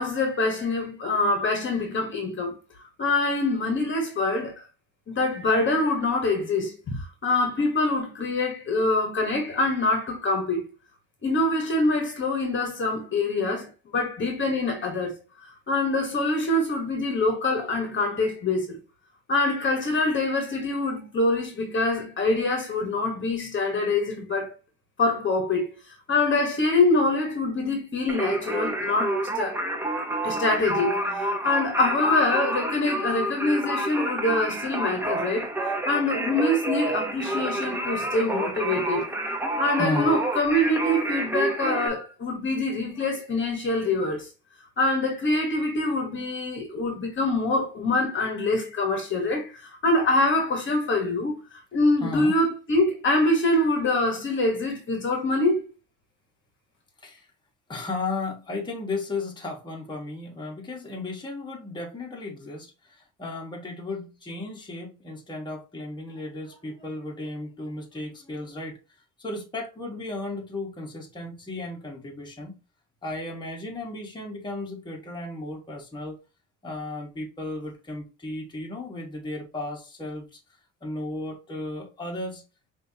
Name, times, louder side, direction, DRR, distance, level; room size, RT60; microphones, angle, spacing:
voice 1, 0.0-2.6 3.0-4.6 5.1-10.7 11.2-15.2 15.7-18.8 19.3-24.5 25.0-25.7 26.1-29.6 30.2-35.5 35.8-39.1 39.6-44.3 44.8-51.4 51.7-55.6, left 2 dB, 40° left, 1.2 m, -25 dB
Singing, 28.1-41.9, right 1 dB, 5° right, 0.8 m, -29 dB
voice 2, 39.5-40.2 43.0-43.1 52.0-52.4 57.0-57.2 57.7-68.8 69.2-72.6 73.0-76.2 76.6-80.4 80.8-82.4, left 2 dB, 15° left, 1.3 m, -34 dB
5.4 x 2.6 x 2.7 m
cardioid pair, 110°, 31 cm